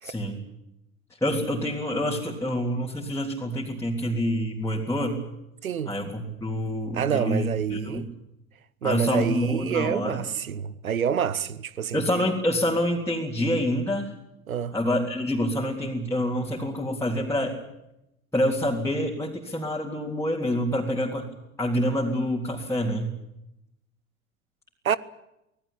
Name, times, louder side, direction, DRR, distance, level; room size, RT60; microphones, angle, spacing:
voice 1, 0.0-0.4 1.2-5.2 5.9-8.1 8.8-10.2 11.9-14.1 14.7-17.6 18.3-21.3 21.6-23.1, equal, 5° left, 3.6 m, -27 dB
voice 2, 5.6-6.0 6.9-8.1 8.8-12.0 14.5-14.7 24.8-25.0, right 8 dB, 80° right, 0.9 m, -27 dB
25.5 x 19.0 x 8.9 m
figure-of-eight pair, 70°, 41 cm